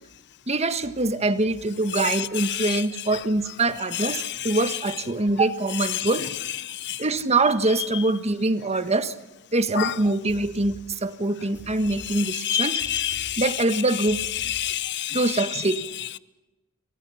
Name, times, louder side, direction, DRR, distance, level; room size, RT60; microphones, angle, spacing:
voice 1, 0.5-6.3 7.0-9.1 9.5-12.8 13.4-14.2 15.1-15.8, right 2 dB, 30° right, 1.5 m, -24 dB
voice 2, 1.9-2.8 3.1-3.2 3.9-4.8 5.9-6.4 6.9-7.0 9.7-9.9 12.2-13.8 14.2-15.6 16.0-16.2, left 11 dB, 50° left, 0.8 m, -29 dB
sound 1, 10.3-12.6 12.8-15.1, equal, 5° right, 6.1 m, -46 dB
28.5 x 22.5 x 5.7 m
head